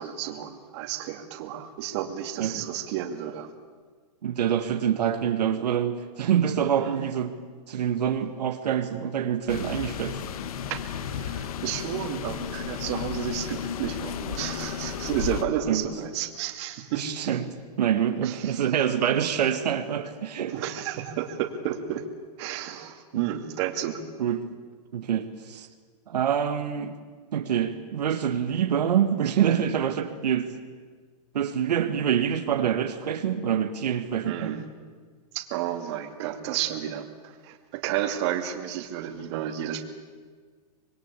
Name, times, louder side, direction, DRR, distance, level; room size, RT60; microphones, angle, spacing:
voice 1, 0.0-3.5 6.8-7.1 10.7-10.8 11.1-17.4 18.2-18.6 20.5-22.0 22.4-24.0 34.2-34.6 35.3-39.8, right 11 dB, 45° right, 6 dB, 2.5 m, -32 dB
voice 2, 4.2-7.4 7.7-10.2 15.7-15.8 17.0-17.5 17.8-20.5 23.1-23.2 24.2-24.4 24.9-25.7 26.1-27.0 27.3-30.5 31.3-34.6, right 9 dB, 80° right, 6 dB, 1.8 m, -26 dB
sound 1, 9.5-15.4, left 8 dB, 60° left, 1.7 m, -33 dB
26.0 x 21.5 x 8.4 m, 1.6 s
hypercardioid pair, 150°, 20 cm